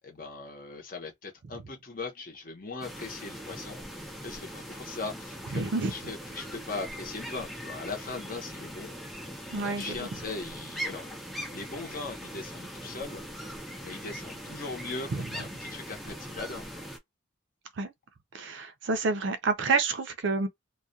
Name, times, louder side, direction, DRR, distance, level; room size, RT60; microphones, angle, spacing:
voice 1, 0.0-5.6 5.9-9.0 9.5-11.1 11.5-13.5 13.8-16.9, left 3 dB, 40° left, 0.8 m, -40 dB
sound 1, 2.8-17.0, equal, ahead, 0.4 m, -41 dB
voice 2, 5.5-5.9 9.5-10.0 15.1-15.3 17.8-17.9 18.3-20.5, right 3 dB, 55° right, 0.5 m, -28 dB
2.3 x 2.2 x 2.5 m
head